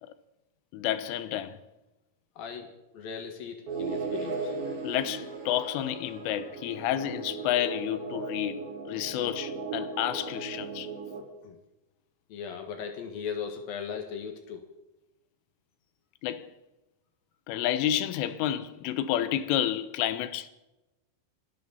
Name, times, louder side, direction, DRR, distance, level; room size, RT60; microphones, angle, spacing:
voice 1, 0.7-1.6 4.8-8.6 8.9-10.9 16.2-16.5 17.5-20.5, left 12 dB, 80° left, 3.2 m, -30 dB
voice 2, 2.4-4.5 11.1-11.6 12.3-14.6, left 6 dB, 60° left, 2.6 m, -38 dB
sound 1, 3.7-11.2, right 4 dB, 50° right, 5.4 m, -37 dB
29.5 x 12.0 x 4.1 m
omnidirectional pair, 5.9 m